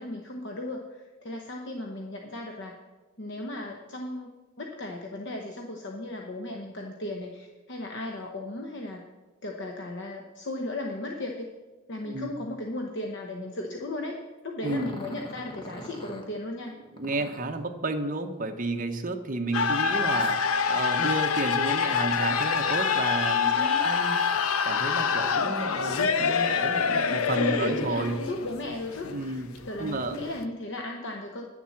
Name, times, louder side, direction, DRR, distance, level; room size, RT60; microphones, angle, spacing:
voice 1, 0.0-2.8 3.2-9.0 9.4-11.5 11.9-14.2 14.4-16.7 23.4-23.8 27.3-29.1 29.7-31.5, left 1 dB, 55° left, 2 dB, 0.9 m, -36 dB
Growling, 14.6-16.3 17.0-17.6 20.2-25.0 25.4-26.2 26.8-26.9 27.5-28.5, equal, 25° left, 1.3 m, -46 dB
voice 2, 14.6-14.9 16.9-20.4 20.7-24.2 24.6-28.2 29.1-29.5 29.8-30.2, right 2 dB, 40° right, 6 dB, 0.9 m, -31 dB
sound 1, 19.5-30.4, left 6 dB, 85° left, 0.7 m, -26 dB
10.0 x 7.1 x 7.1 m, 1.2 s
head